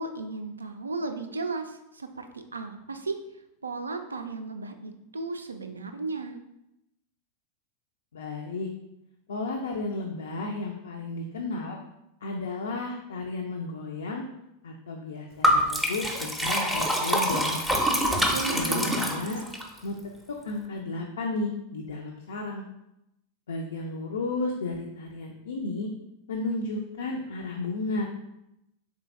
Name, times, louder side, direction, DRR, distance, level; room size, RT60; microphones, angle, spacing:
voice 1, 0.0-3.2 3.6-6.4 18.3-19.3, right 3 dB, 75° right, 7 dB, 0.3 m, -35 dB
voice 2, 8.1-8.7 9.3-11.8 12.2-14.2 14.6-17.6 18.5-19.4 19.8-19.9 20.3-22.6 23.5-25.9 26.3-28.1, left 3 dB, 65° left, 1 dB, 0.4 m, -33 dB
Liquid, 15.4-19.6, equal, ahead, 0.5 m, -25 dB
3.7 x 3.1 x 2.4 m, 0.86 s
figure-of-eight pair, 90°, 0 cm